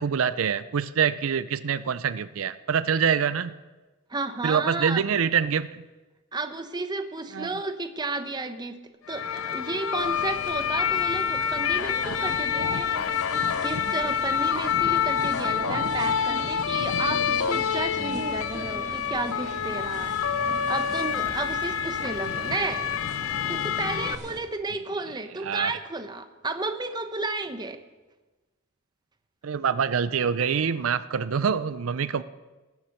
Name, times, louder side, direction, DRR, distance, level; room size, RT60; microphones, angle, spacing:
voice 1, 0.0-3.5 4.4-5.8 7.3-7.5 25.4-25.7 29.4-32.2, right 7 dB, 85° right, 14 dB, 0.5 m, -25 dB
voice 2, 4.1-5.0 6.3-8.8 9.1-12.9 13.2-20.2 20.7-22.9 23.5-27.8, right 3 dB, 20° right, 8 dB, 0.8 m, -32 dB
sound 1, 9.1-24.2, left 8 dB, 75° left, 0.5 m, -27 dB
sound 2, 10.0-24.4, right 2 dB, 35° right, 1.8 m, -40 dB
18.5 x 7.3 x 6.6 m, 1.2 s
head